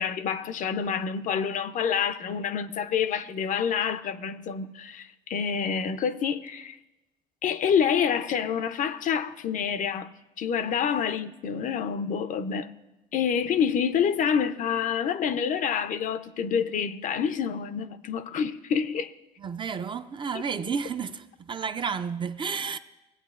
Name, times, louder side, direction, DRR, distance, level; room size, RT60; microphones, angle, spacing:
voice 1, 0.0-6.8 7.4-10.1 10.4-12.7 13.1-19.1, left 7 dB, 50° left, 0.5 m, -27 dB
voice 2, 19.4-22.8, right 6 dB, 30° right, 0.4 m, -31 dB
18.0 x 8.3 x 2.4 m
cardioid pair, 110°, 17 cm